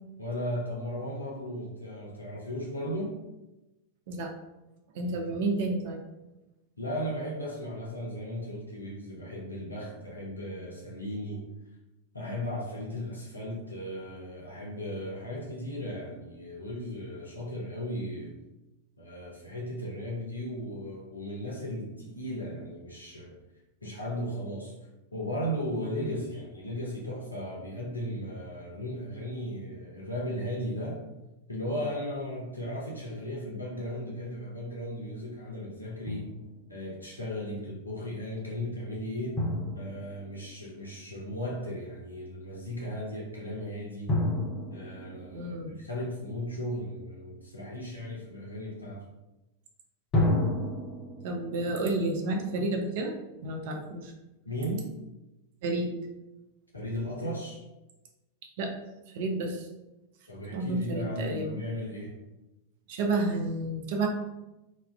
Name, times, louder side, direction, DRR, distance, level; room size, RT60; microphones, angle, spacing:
voice 1, 0.2-3.1 5.0-5.3 6.8-11.5 12.1-18.4 19.0-23.4 23.8-24.7 25.1-31.0 31.5-36.3 36.7-39.4 39.7-44.1 44.7-49.0 54.5-54.9 56.7-57.6 60.3-62.1, equal, 80° left, -3 dB, 0.5 m, -36 dB
voice 2, 4.9-6.0 45.3-45.7 51.2-54.1 55.6-55.9 58.6-58.7 59.1-59.7 60.5-61.5 62.9-64.1, right 2 dB, 50° right, 2 dB, 0.4 m, -30 dB
Drum, 36.1-36.8 39.4-41.1 44.1-46.6 50.1-53.3, left 1 dB, 30° left, 0.7 m, -32 dB
2.3 x 2.1 x 3.3 m, 1.0 s
figure-of-eight pair, 90°, 0 cm